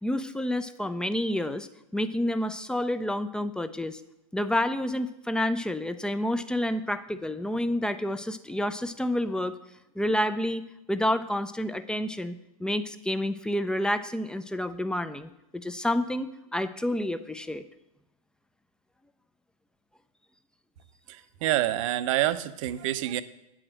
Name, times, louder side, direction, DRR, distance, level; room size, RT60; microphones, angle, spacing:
voice 1, 0.0-1.7 1.9-4.0 4.3-9.6 10.0-17.6, left 1 dB, 5° left, 11 dB, 0.4 m, -29 dB
voice 2, 21.1-23.2, right 14 dB, 60° right, 13 dB, 0.6 m, -27 dB
8.7 x 5.0 x 7.3 m, 0.87 s
hypercardioid pair, 105°, 19 cm